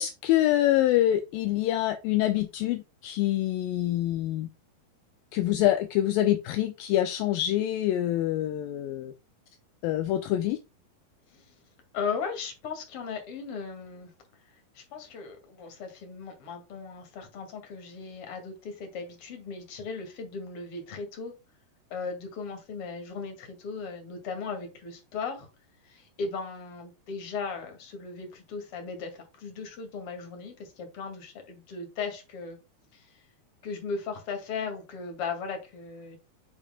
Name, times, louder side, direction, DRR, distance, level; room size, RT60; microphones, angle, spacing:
voice 1, 0.0-4.5 5.3-9.1 9.8-10.6, left 13 dB, 80° left, 2.1 m, -26 dB
voice 2, 11.9-14.1 14.7-21.3 21.9-25.5 25.8-32.6 32.9-33.1 33.6-36.2, left 5 dB, 45° left, 2.5 m, -37 dB
7.2 x 6.7 x 2.2 m
omnidirectional pair, 4.5 m